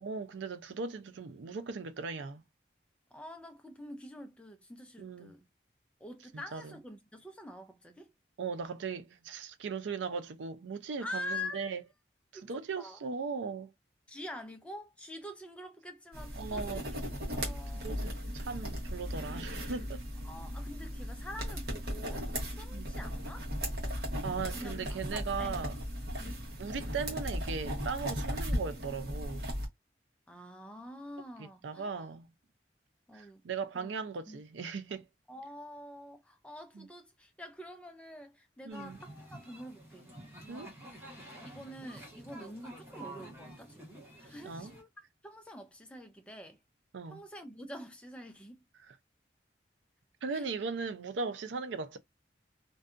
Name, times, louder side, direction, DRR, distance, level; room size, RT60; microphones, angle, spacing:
voice 1, 0.0-2.4 5.0-5.3 6.3-6.7 8.4-11.8 12.4-13.7 16.4-16.8 17.8-20.0 22.7-22.9 24.2-25.8 26.6-29.6 31.4-32.3 33.1-35.1 36.8-36.9 38.6-39.0 40.5-40.7 44.4-44.7 46.9-47.2 50.2-52.0, right 5 dB, 85° right, 0.5 m, -38 dB
voice 2, 3.1-5.5 6.0-8.1 11.0-11.7 12.3-13.0 14.1-16.9 17.3-18.1 20.2-23.5 24.5-25.5 26.2-26.5 30.3-32.1 33.1-33.4 33.7-33.9 34.3-34.4 34.9-40.1 41.4-46.6 47.1-48.6 50.3-50.5, left 1 dB, 5° left, 0.4 m, -46 dB
sound 1, 16.1-29.7, equal, 55° right, 1.0 m, -37 dB
sound 2, 38.7-44.8, right 1 dB, 15° right, 1.0 m, -49 dB
2.6 x 2.2 x 2.4 m
head